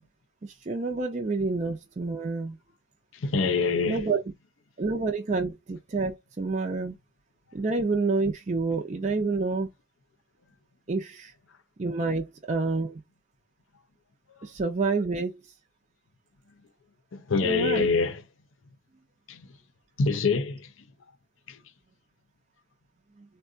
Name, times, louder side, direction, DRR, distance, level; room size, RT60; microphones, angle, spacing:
voice 1, 0.4-2.6 3.9-4.2 4.8-7.0 7.5-9.7 10.9-11.3 11.8-13.0 14.4-15.4 17.4-17.9, right 3 dB, 35° right, 0.5 m, -28 dB
voice 2, 3.1-4.1 17.1-18.2 19.3-19.5 20.0-20.7 21.5-21.6, left 4 dB, 75° left, 0.6 m, -25 dB
3.6 x 2.2 x 2.4 m
head